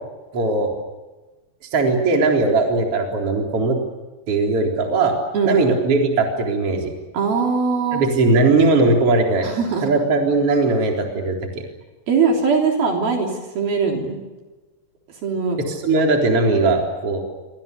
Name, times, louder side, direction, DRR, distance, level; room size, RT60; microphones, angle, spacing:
voice 1, 0.3-0.7 1.7-3.8 4.3-5.1 5.4-6.9 7.9-9.5 9.8-11.6 15.7-17.2, right 3 dB, 35° right, 1 dB, 4.5 m, -19 dB
voice 2, 7.1-8.1 9.4-9.9 12.1-14.2 15.2-15.6, right 5 dB, 60° right, 1 dB, 5.2 m, -21 dB
28.0 x 25.0 x 6.8 m, 1.2 s
omnidirectional pair, 5.0 m